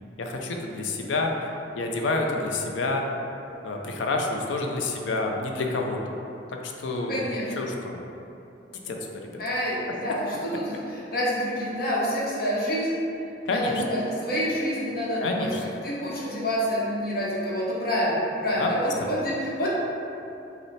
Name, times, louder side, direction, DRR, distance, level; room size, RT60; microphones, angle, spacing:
voice 1, 0.2-1.3 1.7-3.0 3.6-6.2 6.6-7.2 7.6-8.0 8.7-9.4 13.5-13.8 15.2-15.6 18.6-18.7 19.0-19.1, left 3 dB, 90° left, 1 dB, 0.4 m, -28 dB
voice 2, 7.1-7.7 9.4-13.0 13.5-19.7, equal, 55° left, -6 dB, 0.8 m, -27 dB
5.1 x 2.0 x 3.2 m, 2.8 s
head